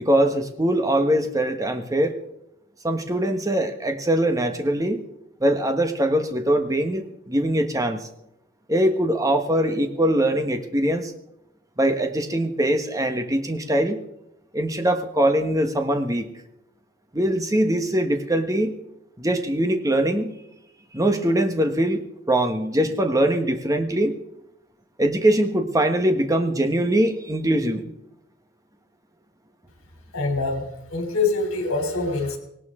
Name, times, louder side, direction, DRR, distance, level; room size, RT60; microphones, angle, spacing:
voice 1, 0.0-2.2 2.8-5.0 5.4-8.1 8.7-11.1 11.8-14.0 14.5-16.3 17.1-18.7 19.2-20.3 20.9-24.1 25.0-27.9, right 1 dB, 15° right, 6 dB, 1.2 m, -22 dB
voice 2, 30.1-32.4, left 3 dB, 70° left, 4 dB, 3.3 m, -25 dB
18.5 x 18.0 x 3.7 m, 0.81 s
head